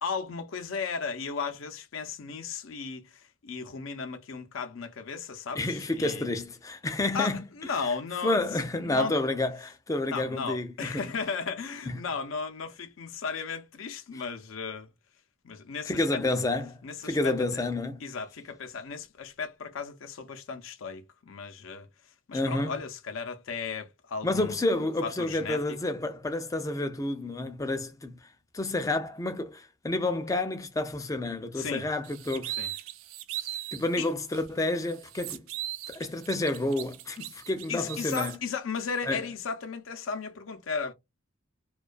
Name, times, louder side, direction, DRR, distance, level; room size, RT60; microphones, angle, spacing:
voice 1, 0.0-6.3 7.1-8.4 8.8-9.1 10.1-14.9 15.4-16.2 16.8-17.6 18.0-21.9 22.3-24.5 25.0-25.6 31.6-31.8 32.6-32.7 33.5-33.6 34.0-34.1 37.7-40.9, left 5 dB, 75° left, 0.5 m, -35 dB
voice 2, 5.6-7.9 8.2-11.1 11.9-12.0 14.1-14.2 15.9-18.0 22.3-22.8 24.2-28.3 28.5-32.7 33.7-35.4 35.9-38.4 39.1-39.3, left 2 dB, 15° left, 0.4 m, -30 dB
sound 1, 32.0-33.9 34.3-34.4 34.8-38.4, right 14 dB, 80° right, 0.4 m, -38 dB
2.2 x 2.2 x 2.4 m
head